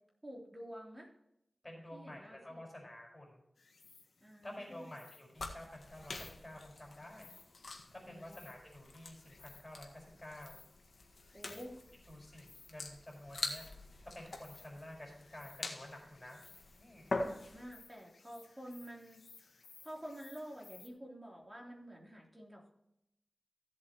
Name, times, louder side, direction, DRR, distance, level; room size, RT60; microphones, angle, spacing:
voice 1, 0.2-1.1 1.9-2.6 4.2-4.9 8.1-8.4 11.3-11.8 17.2-19.2 19.8-22.7, equal, 20° right, -1 dB, 3.4 m, -49 dB
voice 2, 1.6-3.4 4.4-7.3 7.9-10.6 11.5-11.6 12.1-13.7 14.0-16.4 16.8-17.2, left 1 dB, 20° left, -3 dB, 4.9 m, -50 dB
Insect, 3.6-20.9, left 4 dB, 90° left, 1.3 m, -62 dB
sound 1, 5.3-17.8, left 2 dB, 65° left, 1.7 m, -45 dB
16.0 x 7.9 x 3.0 m, 0.81 s
wide cardioid pair, 75°, 0 cm